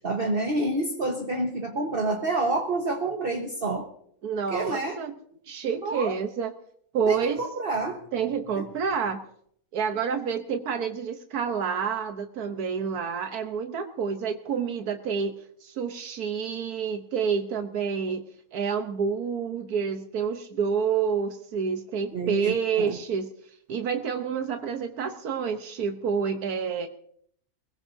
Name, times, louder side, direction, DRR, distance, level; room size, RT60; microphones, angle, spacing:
voice 1, 0.0-3.9 4.5-5.0 5.8-6.1 7.1-8.0 8.6-8.7 22.1-23.0, right 2 dB, 40° right, 2 dB, 1.5 m, -28 dB
voice 2, 4.2-5.1 5.5-6.5 6.9-7.4 8.1-9.2 9.7-15.4 15.6-18.2 18.5-23.3 23.7-26.9, right 6 dB, 90° right, 6 dB, 1.5 m, -28 dB
22.5 x 20.5 x 2.7 m, 0.64 s
omnidirectional pair, 1.5 m